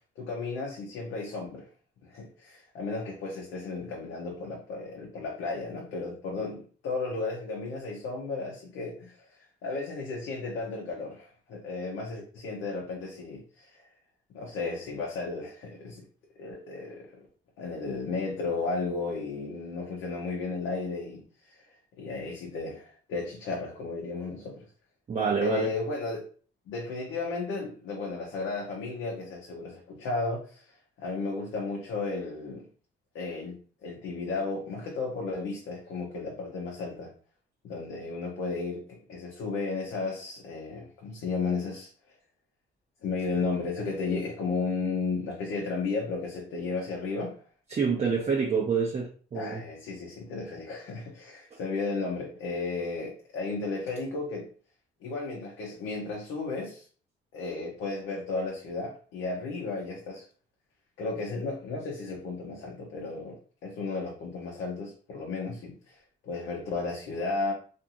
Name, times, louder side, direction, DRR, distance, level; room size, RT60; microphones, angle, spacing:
voice 1, 0.2-1.7 2.0-9.3 9.6-13.8 14.3-16.1 16.4-17.3 17.6-21.6 22.0-24.6 25.4-26.2 26.7-32.7 33.1-37.1 37.6-41.9 43.0-47.3 49.3-54.4 55.0-56.9 57.3-60.2 61.0-67.5, left 3 dB, 80° left, -1 dB, 0.6 m, -34 dB
voice 2, 25.1-25.7 47.7-49.6, right 5 dB, 35° right, -1 dB, 0.6 m, -27 dB
2.5 x 2.4 x 2.8 m, 0.42 s
cardioid pair, 90°, 20 cm